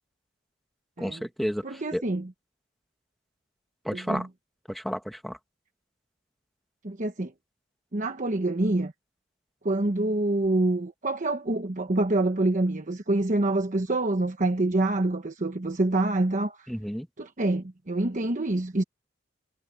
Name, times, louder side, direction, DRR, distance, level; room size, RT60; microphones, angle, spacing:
voice 1, 1.0-2.0 3.8-4.3 4.7-5.4 16.7-17.1, equal, ahead, 1.6 m, -31 dB
voice 2, 1.6-2.3 3.9-4.3 6.8-7.3 7.9-8.9 9.6-16.7 17.2-18.8, right 2 dB, 40° right, 1.1 m, -26 dB
head